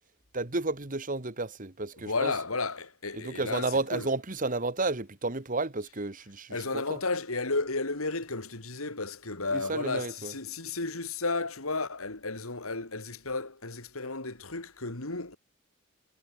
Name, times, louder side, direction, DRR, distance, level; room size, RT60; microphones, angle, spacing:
voice 1, 0.3-2.3 3.1-7.0 9.5-10.3, right 3 dB, 40° right, 1.7 m, -32 dB
voice 2, 2.0-4.1 6.5-15.4, left 3 dB, 85° left, 3.6 m, -33 dB
head